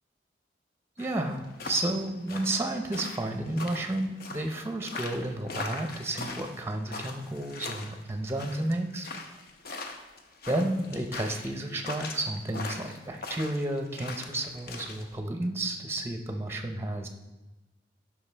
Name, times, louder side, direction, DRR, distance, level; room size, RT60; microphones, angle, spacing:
sound 1, 1.0-15.0, left 3 dB, 60° left, 0.8 m, -40 dB
voice 1, 1.0-9.1 10.5-17.1, right 1 dB, 15° right, 5 dB, 0.5 m, -32 dB
12.0 x 5.0 x 3.3 m, 1.1 s
head